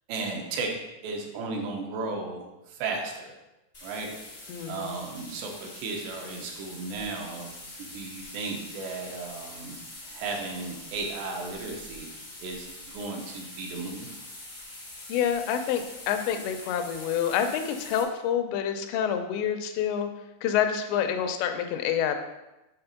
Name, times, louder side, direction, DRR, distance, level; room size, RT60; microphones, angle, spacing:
voice 1, 0.1-0.7 1.0-3.3 3.8-4.2 4.7-7.5 7.8-9.8 10.1-12.1 12.4-14.1, right 3 dB, 80° right, 1 dB, 3.1 m, -35 dB
sound 1, 3.7-18.0, left 1 dB, 50° left, 0.6 m, -44 dB
voice 2, 4.5-4.9 15.1-20.1 20.4-22.2, left 8 dB, 80° left, 7 dB, 2.8 m, -27 dB
7.8 x 4.1 x 5.8 m, 0.98 s
omnidirectional pair, 5.1 m